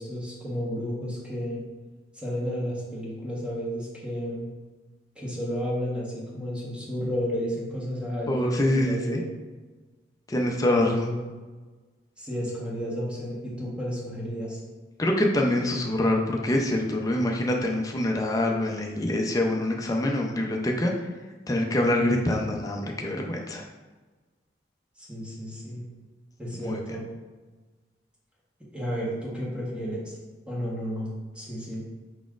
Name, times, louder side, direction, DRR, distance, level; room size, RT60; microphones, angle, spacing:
voice 1, 0.0-1.6 2.1-4.5 5.1-9.2 10.7-11.2 12.2-14.6 25.0-25.8 26.4-27.1 28.7-30.2 30.5-31.8, equal, 5° right, -6 dB, 1.0 m, -32 dB
voice 2, 8.3-9.2 10.3-11.1 15.0-20.9 21.5-23.6 26.6-26.8, left 1 dB, 20° left, 1 dB, 0.4 m, -25 dB
4.8 x 4.0 x 2.4 m, 1.3 s
head